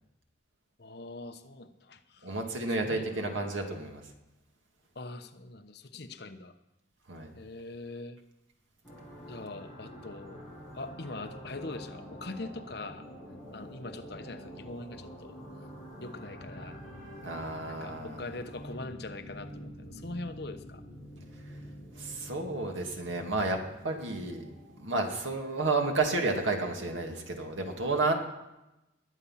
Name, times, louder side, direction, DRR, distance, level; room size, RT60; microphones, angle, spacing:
voice 1, 0.8-2.4 2.7-3.5 4.9-6.5 7.3-8.2 9.3-10.4 10.7-13.0 13.5-15.4 16.0-16.8 17.7-20.8, left 2 dB, 55° left, 8 dB, 1.0 m, -42 dB
voice 2, 2.2-4.0 7.1-7.3 17.2-18.2 22.0-23.6 23.8-24.4 24.8-28.1, right 3 dB, 85° right, 2 dB, 2.3 m, -31 dB
sound 1, 8.8-25.3, equal, ahead, 6.0 m, -47 dB
20.5 x 8.5 x 5.7 m, 0.97 s
head